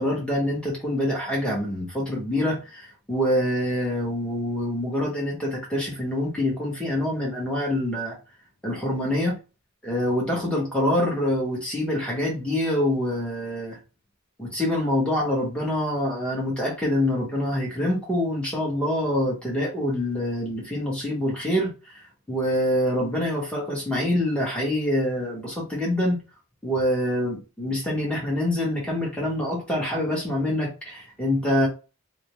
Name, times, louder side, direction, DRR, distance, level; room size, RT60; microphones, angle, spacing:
voice 1, 0.0-8.2 8.6-9.3 9.8-13.8 14.4-22.0 22.3-26.2 26.6-31.7, left 1 dB, 5° left, -3 dB, 0.9 m, -25 dB
2.4 x 2.0 x 2.9 m, 0.32 s
head